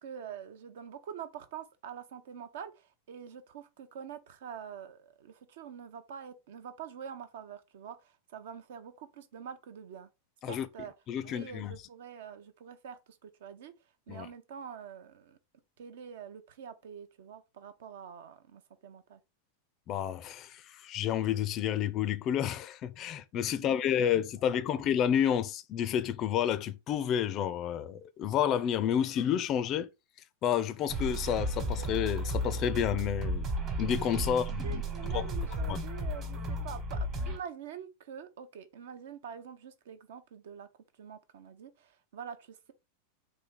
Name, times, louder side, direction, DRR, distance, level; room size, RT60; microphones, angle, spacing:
voice 1, 0.0-10.1 10.5-10.9 11.2-13.7 14.1-15.4 15.8-19.2 23.5-24.0 24.7-24.8 34.3-37.0 37.3-40.7 41.0-42.7, right 8 dB, 55° right, 0.6 m, -46 dB
voice 2, 11.1-11.7 14.1-14.3 19.9-29.9 30.4-33.5 33.8-34.8 35.1-35.2 35.7-35.8, left 9 dB, 35° left, 0.4 m, -30 dB
sound 1, 30.9-37.4, right 1 dB, 30° right, 1.2 m, -34 dB
4.2 x 2.7 x 3.8 m
figure-of-eight pair, 90°, 0 cm